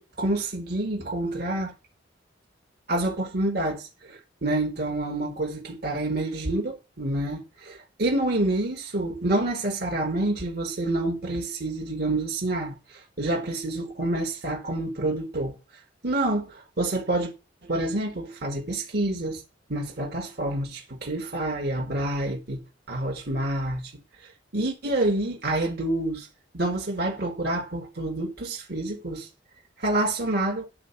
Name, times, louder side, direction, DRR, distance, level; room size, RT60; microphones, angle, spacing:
voice 1, 0.0-1.7 2.9-15.6 16.0-17.3 17.6-19.4 19.7-23.9 24.5-26.3 26.5-29.3 29.8-30.7, right 1 dB, 55° right, 1.8 m, -28 dB
10.5 x 4.3 x 7.0 m
head